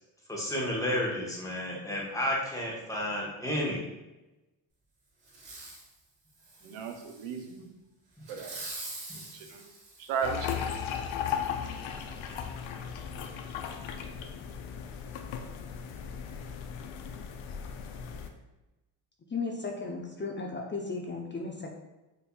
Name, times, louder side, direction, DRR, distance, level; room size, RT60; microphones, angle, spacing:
voice 1, 0.3-3.8, left 1 dB, 5° left, -3 dB, 1.1 m, -31 dB
Fireworks, 5.3-5.9 6.4-7.5 8.2-10.6 11.2-11.3, right 2 dB, 60° right, 1.4 m, -44 dB
voice 2, 6.6-7.7 8.3-8.6 9.0-9.7 10.0-10.7, right 6 dB, 90° right, 5 dB, 0.6 m, -36 dB
sound 1, 10.2-18.3, left 7 dB, 70° left, 0.6 m, -36 dB
voice 3, 19.3-21.7, left 4 dB, 25° left, 0 dB, 0.5 m, -35 dB
4.4 x 2.6 x 2.2 m, 1.0 s
supercardioid pair, 60°, 48 cm